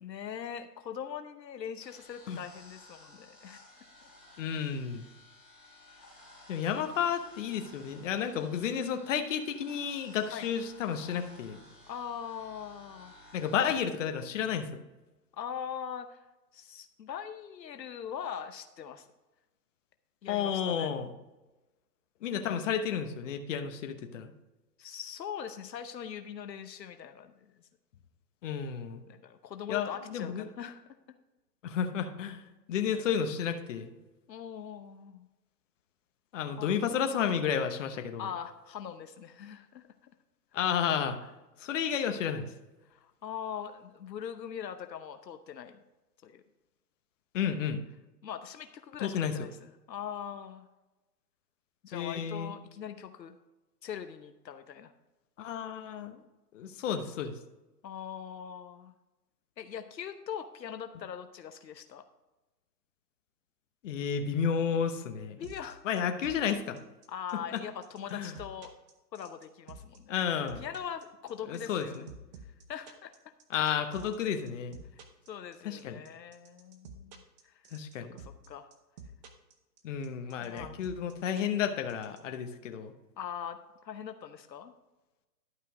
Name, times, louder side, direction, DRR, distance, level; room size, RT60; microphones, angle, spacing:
voice 1, 0.0-3.6 10.3-10.5 11.9-13.1 15.3-16.2 16.5-19.1 20.2-20.9 24.8-27.7 29.1-30.8 34.3-35.3 36.6-36.9 38.2-39.9 42.8-45.8 46.2-46.4 48.2-50.7 51.8-53.4 53.8-54.9 57.8-58.9 59.6-62.0 65.4-65.8 67.1-68.7 69.1-70.1 70.6-72.1 72.7-73.1 75.3-77.6 78.1-78.7 80.4-81.3 83.2-83.6 83.8-84.7, left 8 dB, 80° left, 8 dB, 0.9 m, -41 dB
sound 1, 1.8-13.8, left 1 dB, ahead, 2.4 m, -55 dB
voice 2, 4.4-5.1 6.5-11.6 13.3-14.8 20.3-21.1 22.2-24.3 28.4-29.0 29.7-30.5 31.6-32.4 32.7-33.9 36.3-38.3 40.5-41.2 41.6-42.5 47.3-47.8 49.0-49.5 51.9-52.5 55.4-56.2 56.5-57.3 63.8-65.4 65.8-66.8 67.5-67.6 68.1-68.3 70.1-70.6 71.5-72.0 73.5-74.8 75.6-76.0 77.7-78.1 79.8-82.9, left 8 dB, 45° left, 7 dB, 1.1 m, -32 dB
sound 2, 65.4-82.2, right 5 dB, 25° right, 0.8 m, -49 dB
11.5 x 5.5 x 4.9 m, 1.1 s
hypercardioid pair, 140°, 50 cm